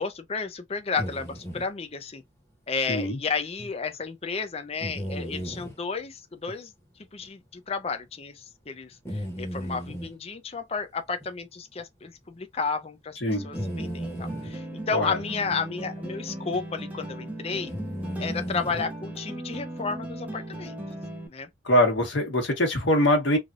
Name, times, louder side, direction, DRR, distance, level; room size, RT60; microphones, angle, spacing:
voice 1, 0.0-2.2 2.7-6.7 7.1-17.7 18.2-20.8 21.3-21.5, left 5 dB, 30° left, 0.5 m, -32 dB
sound 1, 1.0-1.7 3.6-3.7 4.8-5.8 6.5-6.6 7.2-7.3 9.1-10.2 11.2-11.3 11.8-11.9 13.5-14.5 15.5-15.6 16.5-16.7 17.7-18.9, equal, 15° left, 1.1 m, -35 dB
voice 2, 2.9-3.2 13.2-13.5 14.9-15.2 21.6-23.4, left 1 dB, 80° left, 1.4 m, -23 dB
sound 2, 13.3-21.3, right 1 dB, 10° right, 0.8 m, -37 dB
3.3 x 2.4 x 2.5 m
head